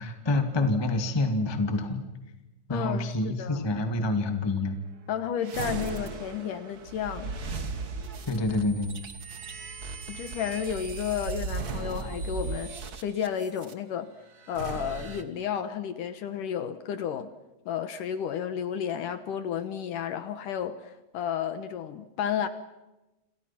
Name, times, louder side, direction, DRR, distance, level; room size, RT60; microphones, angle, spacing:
voice 1, 0.0-2.0 2.7-4.8 8.3-8.9, left 2 dB, 10° left, 6 dB, 1.1 m, -27 dB
voice 2, 2.7-3.6 5.1-7.4 10.1-12.7 13.0-14.1 14.5-17.3 17.7-22.5, left 8 dB, 65° left, 10 dB, 2.4 m, -32 dB
sound 1, 5.4-13.7 14.4-15.2, right 4 dB, 70° right, 0.9 m, -37 dB
29.5 x 27.5 x 6.0 m, 1.0 s
omnidirectional pair, 4.5 m